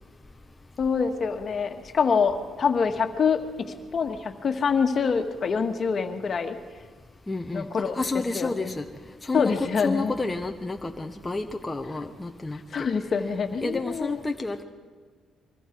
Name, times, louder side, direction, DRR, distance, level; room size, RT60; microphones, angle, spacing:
voice 1, 0.8-6.6 7.5-8.0 8.3-8.7 9.3-10.2 12.7-14.2, left 5 dB, 50° left, 6 dB, 1.7 m, -25 dB
voice 2, 7.3-7.7 7.9-8.8 9.2-12.6 13.6-14.6, left 3 dB, 15° left, 4 dB, 1.1 m, -30 dB
24.5 x 23.5 x 4.7 m, 1.6 s
cardioid pair, 90°, 0 cm